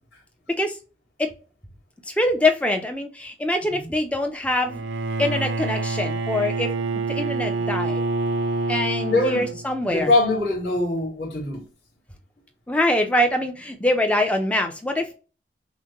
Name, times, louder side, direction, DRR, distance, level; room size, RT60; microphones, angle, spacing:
voice 1, 2.1-4.8 5.2-6.7 7.1-8.0 8.7-10.1 12.7-15.1, left 1 dB, 5° left, 0.6 m, -24 dB
voice 2, 3.6-3.9 9.1-9.5 9.8-11.6, left 2 dB, 70° left, 2.1 m, -23 dB
Bowed string instrument, 4.6-9.9, right 3 dB, 80° right, 0.5 m, -27 dB
6.1 x 2.2 x 2.9 m
head